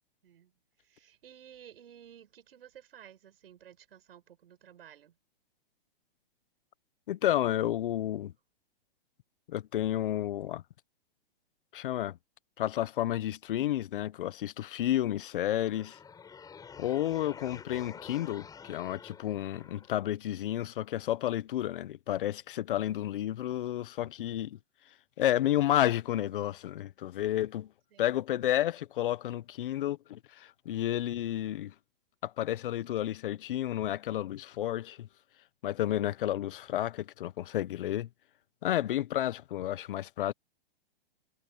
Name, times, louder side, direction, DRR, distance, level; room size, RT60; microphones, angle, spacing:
voice 1, 0.8-5.2 16.9-17.3 27.9-28.1, right 10 dB, 70° right, 7.8 m, -55 dB
voice 2, 7.1-8.3 9.5-10.6 11.7-12.2 12.6-16.0 16.8-24.6 25.2-27.7 28.0-31.7 32.2-35.1 35.6-38.1 38.6-40.3, left 12 dB, 60° left, 1.0 m, -31 dB
sound 1, 15.2-20.2, left 6 dB, 10° left, 6.7 m, -49 dB
hypercardioid pair, 150°, 30 cm